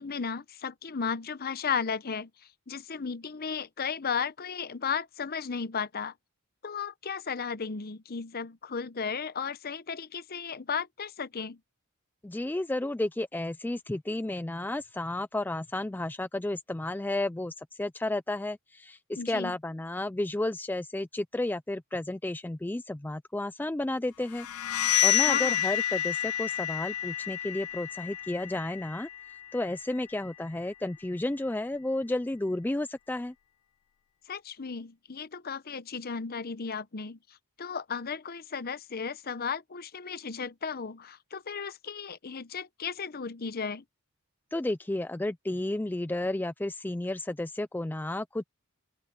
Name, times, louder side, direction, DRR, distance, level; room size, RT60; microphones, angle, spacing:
voice 1, 0.0-2.3 2.7-6.1 6.6-11.6 19.2-19.5 25.2-25.6 34.3-37.2 37.6-43.8, left 6 dB, 45° left, 0.8 m, -35 dB
voice 2, 12.2-24.8 25.0-33.3 44.5-48.4, left 1 dB, 10° left, 0.3 m, -32 dB
sound 1, 24.3-30.0, left 12 dB, 75° left, 0.5 m, -29 dB
open air
head